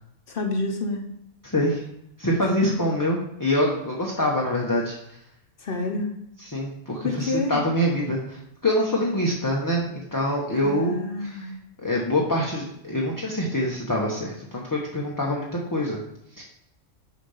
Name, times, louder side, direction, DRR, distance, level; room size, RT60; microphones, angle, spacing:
voice 1, 0.3-1.0 2.6-2.7 5.6-6.1 7.0-7.6 10.6-11.5, left 2 dB, 45° left, 3 dB, 1.2 m, -28 dB
voice 2, 1.4-1.8 2.2-5.0 6.4-11.5 11.8-16.0 16.4-16.5, left 1 dB, 15° left, -3 dB, 0.9 m, -25 dB
6.5 x 5.1 x 5.6 m, 0.80 s
omnidirectional pair, 1.3 m